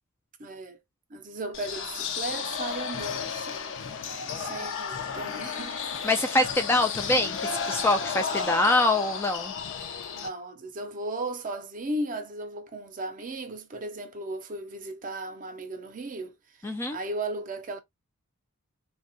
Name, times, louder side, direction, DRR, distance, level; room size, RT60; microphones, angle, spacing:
voice 1, 0.4-0.8 1.1-3.8 4.3-5.8 8.2-8.6 10.1-16.3 16.9-17.8, right 2 dB, 35° right, 0.6 m, -36 dB
sound 1, 1.5-10.3, left 6 dB, 60° left, 0.5 m, -33 dB
voice 2, 6.0-9.5 16.6-17.0, left 2 dB, 10° left, 0.3 m, -24 dB
3.3 x 2.2 x 2.5 m
head